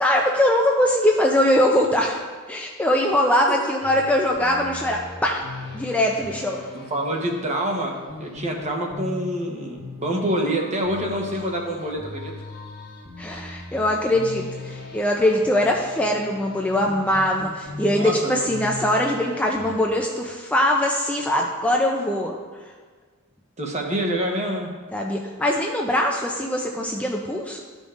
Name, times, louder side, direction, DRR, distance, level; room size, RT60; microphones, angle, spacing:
voice 1, 0.0-5.5 5.7-6.6 13.2-22.4 22.6-22.7 24.9-27.6, left 1 dB, 5° left, -1 dB, 0.4 m, -22 dB
sound 1, 3.8-19.8, left 3 dB, 45° left, 1.2 m, -39 dB
voice 2, 6.7-12.3 17.9-18.4 23.6-24.7, right 1 dB, 30° right, 1 dB, 1.0 m, -26 dB
12.5 x 5.1 x 2.5 m, 1.5 s
head